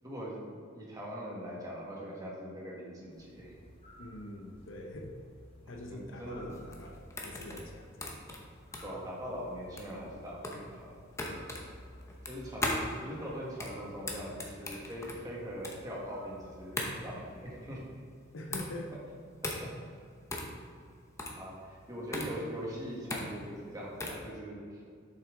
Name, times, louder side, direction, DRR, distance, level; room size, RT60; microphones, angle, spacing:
voice 1, 0.0-0.5 0.7-3.5 5.9-6.6 8.8-10.9 12.2-12.8 13.0-17.8 19.4-19.7 21.4-24.8, equal, 20° right, -5 dB, 1.6 m, -41 dB
sound 1, 3.1-17.9, equal, 30° left, 1.3 m, -55 dB
voice 2, 4.0-5.2 5.7-8.4 11.3-11.6 18.3-18.9, left 1 dB, 70° left, 3 dB, 0.7 m, -44 dB
sound 2, 6.5-24.3, left 2 dB, 15° left, 0.8 m, -39 dB
7.0 x 5.8 x 3.8 m, 2.2 s
head